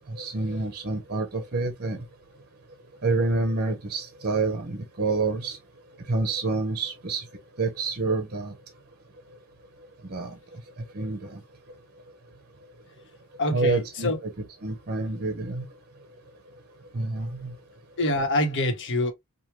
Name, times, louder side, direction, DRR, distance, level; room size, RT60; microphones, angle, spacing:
voice 1, 0.1-2.0 3.0-5.6 6.1-7.2 7.6-8.5 10.1-10.6 10.9-11.4 13.5-14.1 14.4-15.7 16.9-17.5, right 3 dB, 45° right, 0.8 m, -28 dB
voice 2, 13.4-14.2 18.0-19.1, left 1 dB, 55° left, 1.1 m, -25 dB
4.5 x 2.3 x 3.2 m
head